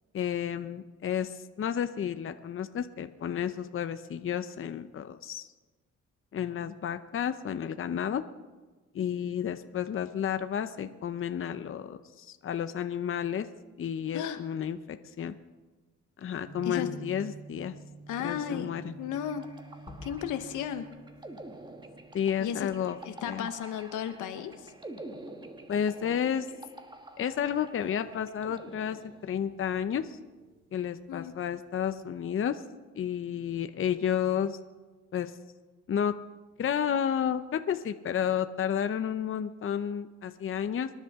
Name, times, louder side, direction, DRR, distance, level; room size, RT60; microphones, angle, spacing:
voice 1, 0.1-5.5 6.3-8.2 8.9-13.5 13.8-15.4 16.2-17.7 18.2-18.9 22.1-23.0 23.3-23.5 25.7-26.5 27.2-30.2 30.7-32.6 32.9-34.6 35.1-35.3 35.9-36.1 36.6-40.9, left 8 dB, 45° left, 10 dB, 0.8 m, -31 dB
sound 1, 16.5-32.2, right 3 dB, 40° right, 2.7 m, -52 dB
voice 2, 18.1-18.7 19.0-19.4 20.0-20.8 22.4-22.7 23.0-24.7 31.1-31.3, left 9 dB, 85° left, 8 dB, 1.2 m, -34 dB
sound 2, 19.1-29.6, right 2 dB, 15° right, 1.4 m, -48 dB
Gunshot gunfire / Fireworks / Boom, 19.9-24.7, left 3 dB, 20° left, 2.9 m, -54 dB
25.5 x 11.0 x 3.7 m, 1.3 s
cardioid pair, 90°, 30 cm